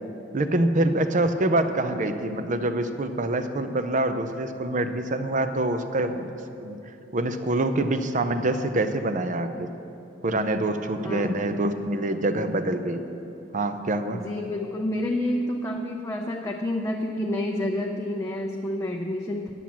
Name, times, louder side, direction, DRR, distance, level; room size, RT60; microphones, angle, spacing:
voice 1, 0.3-6.3 6.6-6.8 7.1-9.7 10.2-13.0 13.5-14.2, right 2 dB, 40° right, 9 dB, 0.6 m, -25 dB
voice 2, 11.0-11.5 14.1-19.5, left 1 dB, 15° left, 1 dB, 0.5 m, -29 dB
9.9 x 7.6 x 7.4 m, 2.8 s
head